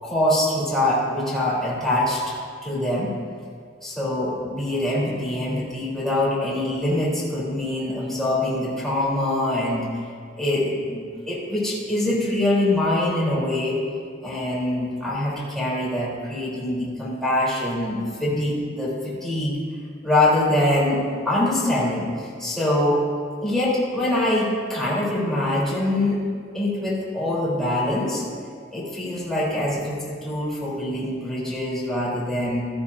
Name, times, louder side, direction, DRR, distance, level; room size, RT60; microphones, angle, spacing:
voice 1, 0.0-2.3 2.6-3.2 3.8-9.9 10.4-13.8 14.2-19.6 20.0-23.0 23.4-26.2 26.5-28.3 28.7-32.7, left 1 dB, ahead, -8 dB, 4.0 m, -24 dB
17.5 x 13.0 x 2.8 m, 2.1 s
head